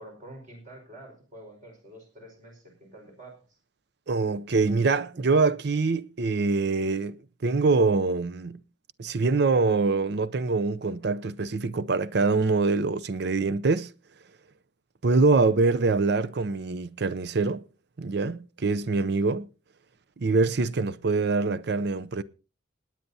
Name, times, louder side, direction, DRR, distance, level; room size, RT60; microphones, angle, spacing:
voice 1, 0.0-3.6, right 1 dB, 45° right, 4.8 m, -47 dB
voice 2, 4.1-8.6 9.0-13.9 15.0-17.6 18.0-19.5 20.2-22.2, right 3 dB, 60° right, 0.6 m, -24 dB
27.0 x 9.2 x 2.7 m
head